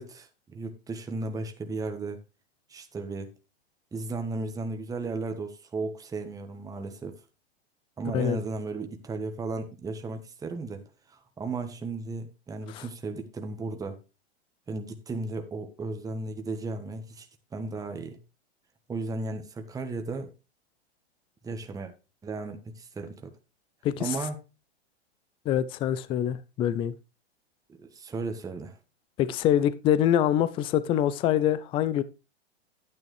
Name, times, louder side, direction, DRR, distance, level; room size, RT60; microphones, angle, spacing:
voice 1, 0.0-2.2 2.7-3.3 3.9-7.1 8.0-10.8 11.1-14.0 14.7-17.3 17.5-18.2 18.9-20.3 21.4-21.9 22.2-23.3 24.0-24.4 27.8-28.8, right 3 dB, 10° right, 1.2 m, -35 dB
voice 2, 23.8-24.2 25.5-26.9 29.2-32.0, left 10 dB, 15° left, 0.4 m, -25 dB
10.5 x 9.4 x 3.2 m
hypercardioid pair, 125°, 33 cm